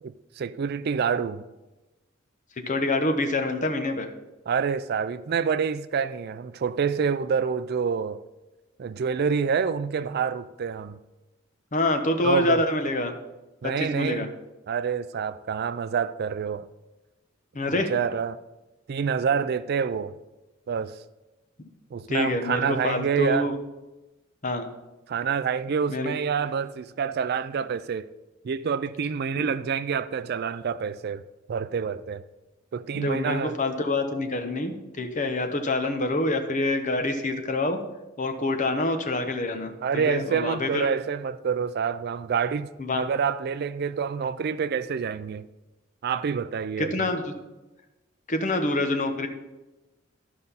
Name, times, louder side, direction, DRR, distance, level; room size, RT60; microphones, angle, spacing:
voice 1, 0.0-1.4 4.5-8.2 8.8-11.0 12.2-12.6 13.6-14.3 14.7-16.7 17.9-18.4 18.9-20.1 20.7-21.0 21.9-23.5 25.1-28.1 28.4-31.2 31.5-32.2 32.7-33.5 39.8-45.5 46.0-47.1, right 6 dB, 50° right, 0.4 m, -27 dB
voice 2, 2.6-4.1 11.7-13.1 13.6-14.3 17.5-17.9 22.1-23.6 24.4-24.7 25.9-26.1 29.4-29.5 32.9-37.8 38.2-40.9 42.8-43.0 46.8-47.3 48.3-49.3, left 2 dB, 40° left, 1.0 m, -26 dB
13.0 x 5.3 x 5.6 m
head